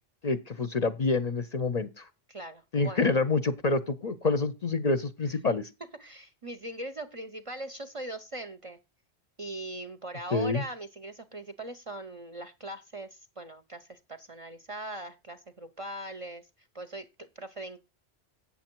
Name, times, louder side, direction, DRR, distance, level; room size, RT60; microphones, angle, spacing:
voice 1, 0.2-2.1 2.7-5.7 10.3-10.6, left 3 dB, 45° left, 0.6 m, -27 dB
voice 2, 2.3-3.1 6.0-8.8 9.4-16.5 16.7-17.8, right 1 dB, 40° right, 0.5 m, -40 dB
8.5 x 7.0 x 4.4 m
omnidirectional pair, 1.1 m